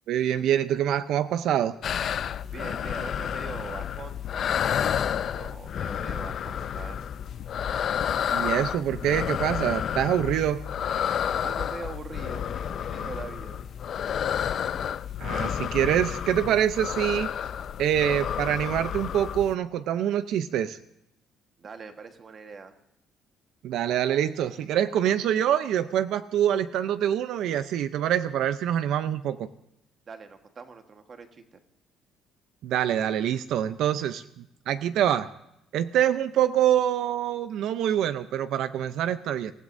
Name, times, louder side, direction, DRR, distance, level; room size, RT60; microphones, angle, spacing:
voice 1, 0.1-1.7 8.3-10.6 15.2-17.3 17.8-20.8 23.6-29.5 32.6-35.3 35.7-39.5, right 10 dB, 65° right, 12 dB, 0.6 m, -25 dB
sound 1, 1.8-19.5, left 9 dB, 45° left, 0.4 m, -30 dB
voice 2, 2.5-4.2 5.2-7.0 11.4-13.6 21.6-22.7 30.1-31.6, right 5 dB, 30° right, 6 dB, 1.3 m, -42 dB
26.0 x 15.5 x 2.6 m, 0.83 s
cardioid pair, 170°, 0 cm